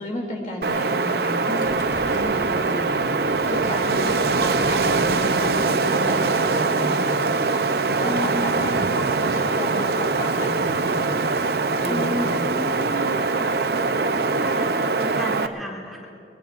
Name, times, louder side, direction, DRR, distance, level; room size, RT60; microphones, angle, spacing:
voice 1, 0.0-3.1 3.5-7.3 8.0-11.2 11.8-12.4 13.0-13.2, equal, 45° left, -1 dB, 2.8 m, -32 dB
Wind, 0.6-15.5, right 3 dB, 60° right, 0.6 m, -22 dB
Gurgling, 1.6-6.3, equal, 25° left, 2.9 m, -39 dB
voice 2, 8.0-8.9 11.9-13.5 14.4-16.1, equal, ahead, -5 dB, 2.5 m, -33 dB
24.5 x 21.5 x 2.6 m, 2.6 s
head